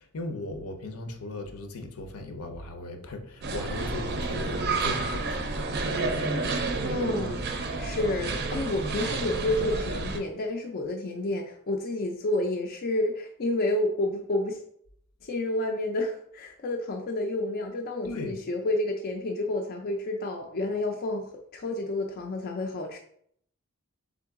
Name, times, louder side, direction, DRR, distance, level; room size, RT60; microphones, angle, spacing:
voice 1, 0.0-5.7 18.0-18.4, left 2 dB, 75° left, 6 dB, 0.7 m, -37 dB
sound 1, 3.4-10.2, right 3 dB, 45° right, 0.5 m, -30 dB
voice 2, 6.8-7.5 7.8-14.6 15.2-21.3 21.5-23.0, left 2 dB, 45° left, 1 dB, 0.4 m, -30 dB
3.8 x 3.7 x 3.5 m, 0.67 s
head